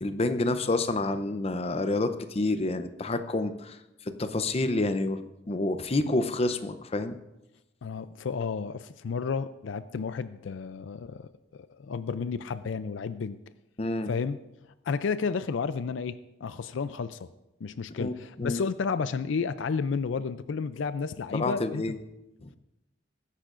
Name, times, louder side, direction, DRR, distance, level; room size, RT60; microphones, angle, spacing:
voice 1, 0.0-3.8 4.2-5.2 5.5-7.2 13.8-14.1 18.0-18.6 21.3-22.0 22.4-22.6, left 2 dB, 30° left, 10 dB, 0.6 m, -28 dB
voice 2, 7.8-13.4 14.1-14.4 14.9-17.3 17.6-22.0, left 5 dB, 75° left, 13 dB, 0.4 m, -32 dB
19.0 x 10.0 x 2.5 m, 0.95 s
head